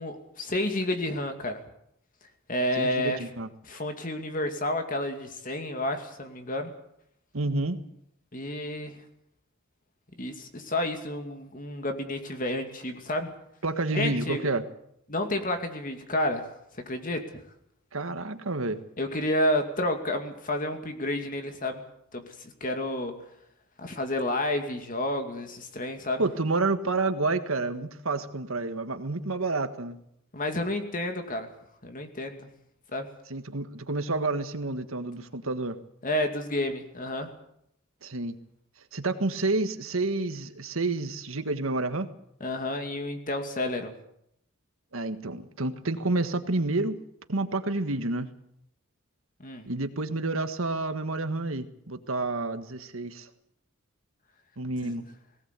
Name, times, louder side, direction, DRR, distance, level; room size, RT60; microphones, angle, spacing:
voice 1, 0.0-1.6 2.5-3.2 3.6-6.7 8.3-9.0 10.2-13.3 13.9-14.5 15.1-16.5 16.7-17.4 19.0-21.8 22.1-23.1 23.8-26.2 30.3-31.5 31.8-32.5 32.9-33.1 36.0-37.3 42.4-43.9 49.4-49.7 54.8-55.0, left 1 dB, 40° left, 5 dB, 2.5 m, -30 dB
voice 2, 2.8-3.5 7.3-7.8 13.6-14.6 17.9-18.8 26.2-30.0 33.3-35.8 38.0-38.4 38.9-42.1 44.9-47.0 47.3-48.3 49.7-53.3 54.6-55.0, right 2 dB, 85° right, 9 dB, 1.7 m, -29 dB
19.5 x 17.5 x 8.4 m, 0.76 s
head